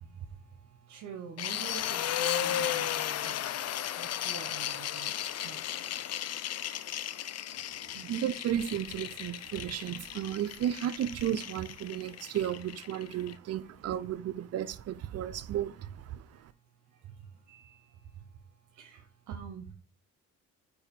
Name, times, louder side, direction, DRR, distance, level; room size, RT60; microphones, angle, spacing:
voice 1, 0.0-6.2 7.9-8.1 12.1-12.2 13.4-14.0 15.1-19.7, right 7 dB, 75° right, 0.9 m, -48 dB
sound 1, 1.4-13.3, left 11 dB, 55° left, 0.5 m, -35 dB
voice 2, 8.1-16.2, right 10 dB, 55° right, 0.5 m, -33 dB
4.8 x 4.7 x 5.2 m
cardioid pair, 90°, 30 cm